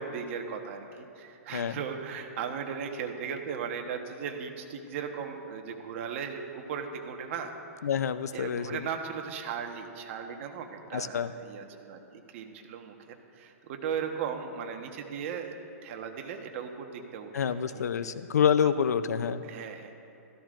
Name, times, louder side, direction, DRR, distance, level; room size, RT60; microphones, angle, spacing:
voice 1, 0.0-7.5 8.3-12.9 13.4-15.5 15.8-17.8 19.4-19.9, right 7 dB, 50° right, 4 dB, 1.2 m, -37 dB
voice 2, 7.8-8.8 10.9-11.3 17.3-19.4, left 7 dB, 90° left, 13 dB, 0.5 m, -27 dB
16.5 x 13.5 x 2.5 m, 2.7 s
hypercardioid pair, 140°, 9 cm